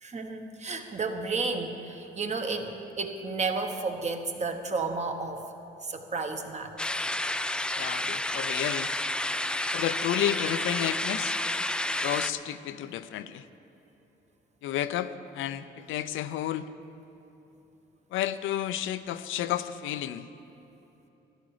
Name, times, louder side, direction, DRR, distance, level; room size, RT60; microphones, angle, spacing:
voice 1, 0.0-5.5 5.8-6.7, right 4 dB, 35° right, 5 dB, 1.2 m, -32 dB
sound 1, 6.8-12.3, left 1 dB, 5° left, 0.3 m, -30 dB
voice 2, 7.7-8.9 9.7-11.4 12.0-13.4 14.6-16.7 18.1-20.3, left 11 dB, 85° left, 13 dB, 0.5 m, -31 dB
13.0 x 11.5 x 4.9 m, 3.0 s
cardioid pair, 90°, 20 cm